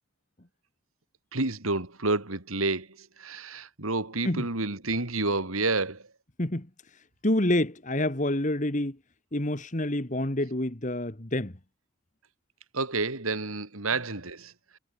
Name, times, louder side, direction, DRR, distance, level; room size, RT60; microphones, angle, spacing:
voice 1, 1.3-6.0 12.7-14.5, right 3 dB, 90° right, 3.2 m, -29 dB
voice 2, 6.4-9.0 9.3-11.6, left 1 dB, 35° left, 1.8 m, -28 dB
head